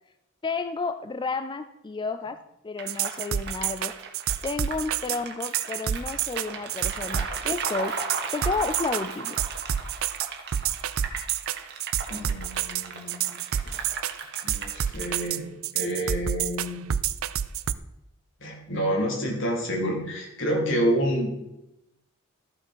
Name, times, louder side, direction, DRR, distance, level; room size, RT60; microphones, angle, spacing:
voice 1, 0.4-2.4 2.6-3.9 4.4-7.9 8.3-9.4, left 4 dB, 25° left, 10 dB, 0.4 m, -31 dB
sound 1, 2.8-15.1, right 4 dB, 55° right, 1.6 m, -37 dB
sound 2, 2.9-17.7, right 10 dB, 85° right, 0.5 m, -28 dB
voice 2, 12.1-13.2 13.6-13.9 14.4-15.4 15.7-16.8 18.4-21.4, equal, 65° left, 0 dB, 2.9 m, -28 dB
13.5 x 6.0 x 5.4 m, 0.90 s
head